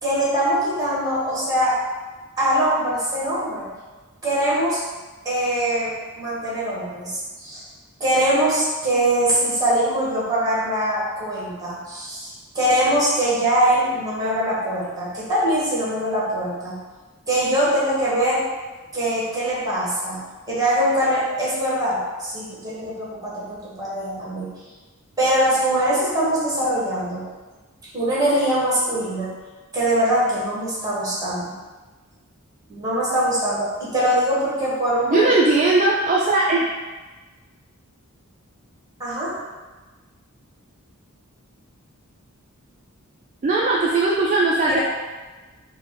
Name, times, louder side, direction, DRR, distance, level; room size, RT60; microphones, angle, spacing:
voice 1, 0.0-1.8 2.4-3.7 4.2-4.8 5.2-7.6 8.0-16.7 17.3-18.4 18.9-20.2 20.5-24.5 25.2-27.2 27.9-29.3 29.7-31.5 32.7-35.3 39.0-39.3 44.6-44.8, right 1 dB, 15° right, -7 dB, 1.3 m, -22 dB
voice 2, 35.1-36.7 43.4-44.8, right 2 dB, 35° right, -4 dB, 0.4 m, -18 dB
4.2 x 2.1 x 4.6 m, 1.3 s
head